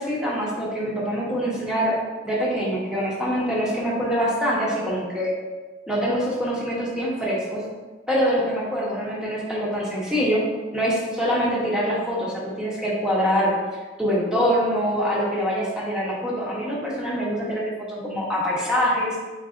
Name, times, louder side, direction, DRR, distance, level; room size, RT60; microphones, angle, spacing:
voice 1, 0.0-2.0 2.2-5.3 5.9-7.6 8.1-10.4 10.7-13.5 14.0-19.2, equal, 5° right, -6 dB, 0.8 m, -24 dB
3.9 x 3.3 x 2.5 m, 1.3 s
head